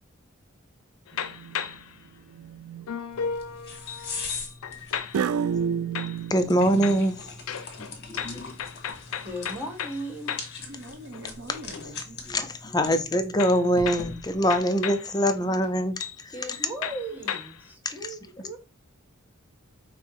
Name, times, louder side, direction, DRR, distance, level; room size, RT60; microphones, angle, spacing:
sound 1, 1.1-2.0 2.9-5.4 5.9-6.5 6.8-10.6 11.0-11.9 13.4-15.1 15.6-15.7 16.0-16.2 16.5-17.7, left 7 dB, 90° left, 0.5 m, -35 dB
Plasticoustic - Bass Twang, 1.2-1.7 2.3-2.9 5.1-7.0, right 7 dB, 80° right, 0.3 m, -30 dB
sound 2, 3.1-14.6, left 4 dB, 55° left, 1.3 m, -41 dB
voice 1, 6.3-7.3 8.1-8.5 11.8-11.9 12.3-16.3 17.8-17.9, equal, 20° left, 0.5 m, -24 dB
voice 2, 9.2-10.4 13.2-13.3 16.3-18.6, right 1 dB, 10° right, 1.2 m, -37 dB
voice 3, 10.7-12.2, right 1 dB, 60° right, 0.8 m, -43 dB
5.4 x 2.1 x 4.6 m
head